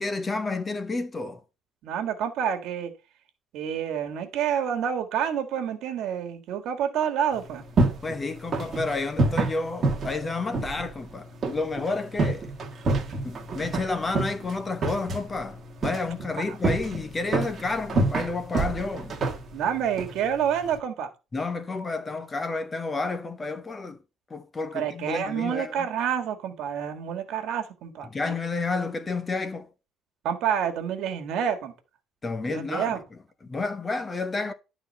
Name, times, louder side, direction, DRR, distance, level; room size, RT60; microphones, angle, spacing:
voice 1, 0.0-1.4 8.0-12.5 13.2-19.2 21.3-24.0 24.3-25.9 28.0-29.7 32.2-33.0 33.4-34.5, left 3 dB, 15° left, 0.7 m, -30 dB
voice 2, 1.8-2.9 3.5-7.6 16.5-16.6 19.5-21.1 24.7-28.3 30.2-31.7 32.5-33.0, right 8 dB, 60° right, 1.7 m, -28 dB
sound 1, 7.3-20.8, right 3 dB, 30° right, 1.5 m, -29 dB
11.0 x 4.0 x 5.3 m
cardioid pair, 175°, 0 cm